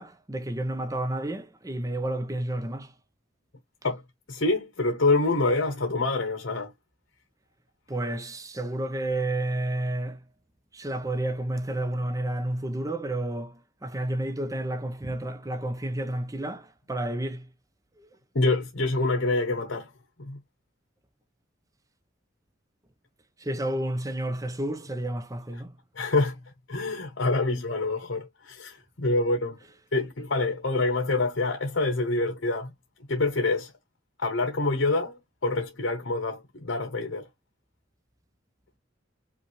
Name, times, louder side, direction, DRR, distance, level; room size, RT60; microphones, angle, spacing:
voice 1, 0.0-2.9 7.9-10.2 10.7-17.4 23.4-25.7, right 1 dB, 15° right, 0.7 m, -31 dB
voice 2, 4.3-6.7 18.3-19.9 20.2-20.4 26.0-26.4 26.7-29.6 29.9-32.7 33.1-33.7 34.2-37.3, left 2 dB, 65° left, 1.0 m, -26 dB
5.5 x 2.5 x 3.1 m
head